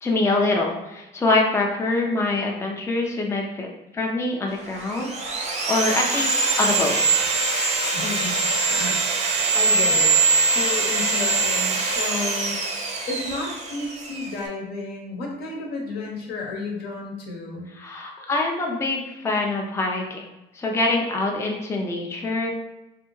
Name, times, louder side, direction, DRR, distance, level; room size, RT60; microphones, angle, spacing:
voice 1, 0.0-3.7 3.9-5.1 5.7-7.3 17.8-20.3 20.5-22.5, left 2 dB, 15° left, 0 dB, 0.4 m, -24 dB
Sawing, 4.6-14.4, right 4 dB, 40° right, 0.6 m, -23 dB
voice 2, 7.9-10.2 10.5-12.6 13.1-17.7, left 3 dB, 70° left, -1 dB, 0.9 m, -32 dB
3.3 x 2.6 x 3.0 m, 0.98 s
cardioid pair, 110°, 17 cm